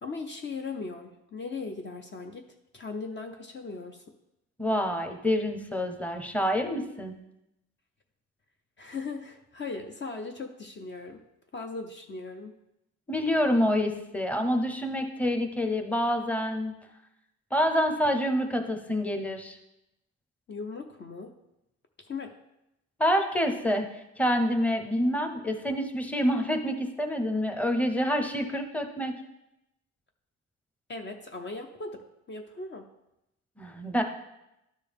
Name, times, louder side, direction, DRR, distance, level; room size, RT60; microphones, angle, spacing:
voice 1, 0.0-2.4 2.7-4.0 8.8-11.2 11.5-12.5 20.5-21.3 22.0-22.3 30.9-32.9, left 4 dB, 35° left, 4 dB, 0.7 m, -38 dB
voice 2, 4.6-7.1 13.1-16.7 17.5-19.6 23.0-23.8 24.2-29.1 33.6-34.0, equal, 5° left, 5 dB, 0.9 m, -27 dB
12.5 x 4.5 x 3.5 m, 0.88 s
cardioid pair, 90°, 30 cm